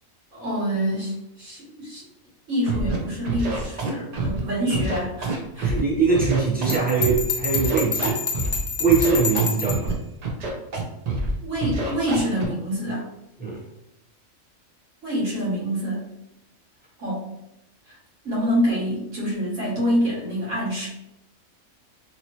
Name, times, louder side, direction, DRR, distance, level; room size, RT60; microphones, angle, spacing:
voice 1, 0.3-2.0 2.5-5.8 11.4-13.1 15.0-16.0 17.0-17.2 17.9-18.0 18.2-20.9, equal, 65° right, -6 dB, 1.6 m, -26 dB
Scratching (performance technique), 2.7-3.0 3.2-4.4 4.7-5.8 6.1-7.2 7.5-8.6 8.9-9.9 10.2-10.8 11.1-11.3 11.6-12.4, right 3 dB, 85° right, 0.3 m, -26 dB
voice 2, 5.6-8.2 8.8-9.9 13.4-13.6, right 5 dB, 10° right, -6 dB, 0.4 m, -22 dB
Bell, 6.7-9.9, left 5 dB, 70° left, 0.4 m, -28 dB
2.9 x 2.8 x 2.8 m, 0.86 s
omnidirectional pair, 1.4 m